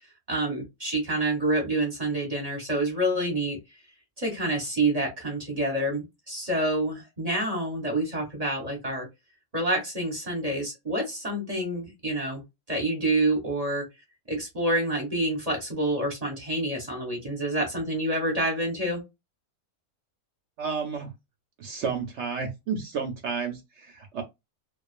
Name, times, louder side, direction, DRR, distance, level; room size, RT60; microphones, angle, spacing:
voice 1, 0.3-3.6 4.2-9.1 9.5-12.4 12.7-13.8 14.3-19.0, right 1 dB, 35° right, 0.7 m, -27 dB
voice 2, 20.6-21.1 21.6-24.2, right 5 dB, 65° right, 0.7 m, -31 dB
2.4 x 2.3 x 2.3 m
omnidirectional pair, 1.6 m